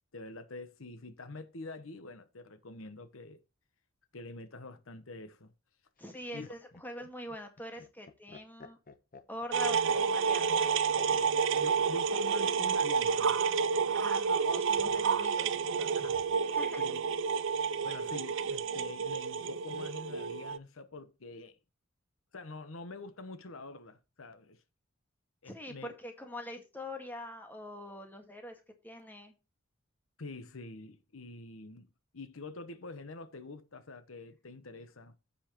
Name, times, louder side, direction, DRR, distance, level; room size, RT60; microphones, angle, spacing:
voice 1, 0.1-3.4 4.1-5.5 6.3-6.5 11.5-13.4 15.9-16.2 16.8-17.0 17.8-21.6 22.3-24.6 25.4-25.9 30.2-31.9 32.1-35.1, left 2 dB, 75° left, 1.0 m, -46 dB
Laughter, 6.0-11.7 13.0-13.6, left 4 dB, 45° left, 0.9 m, -51 dB
voice 2, 6.0-8.8 9.3-10.8 13.9-16.1 16.4-17.0 25.5-28.6 28.8-29.3, left 1 dB, 10° left, 1.7 m, -44 dB
sound 1, 9.5-20.6, right 6 dB, 65° right, 0.5 m, -30 dB
15.0 x 5.5 x 3.0 m
head